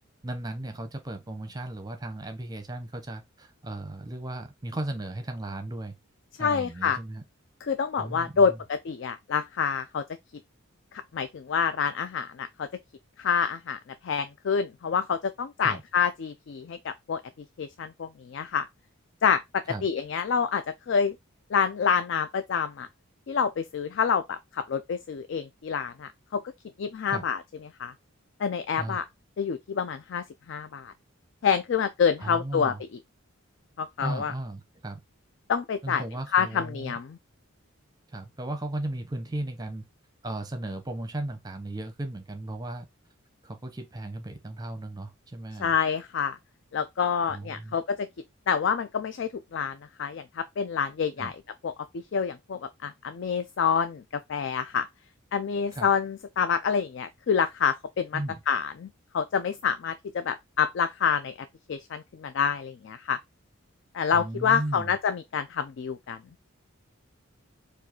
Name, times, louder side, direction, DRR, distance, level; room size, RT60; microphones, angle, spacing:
voice 1, 0.2-5.9 6.4-7.2 8.0-8.6 15.6-15.8 19.7-19.8 27.1-27.2 28.8-29.0 32.2-32.8 34.0-35.0 35.8-37.0 38.1-39.8 40.2-42.9 43.4-45.8 47.3-47.8 51.2-51.3 55.7-55.9 58.1-58.4 64.1-64.9, right 1 dB, 20° right, 0.7 m, -36 dB
voice 2, 6.4-7.0 7.6-10.0 10.9-12.7 13.2-17.2 17.6-18.7 19.2-21.2 21.5-22.9 23.3-26.4 26.8-27.4 27.8-27.9 28.4-29.0 29.4-30.9 31.4-32.7 33.8-34.3 35.5-36.0 36.3-37.2 45.6-46.4 46.7-48.1 48.5-51.3 51.6-54.0 54.3-54.9 55.3-58.2 58.5-61.3 61.7-63.2 63.9-66.2, left 6 dB, 55° left, 0.3 m, -27 dB
4.6 x 2.4 x 4.3 m
head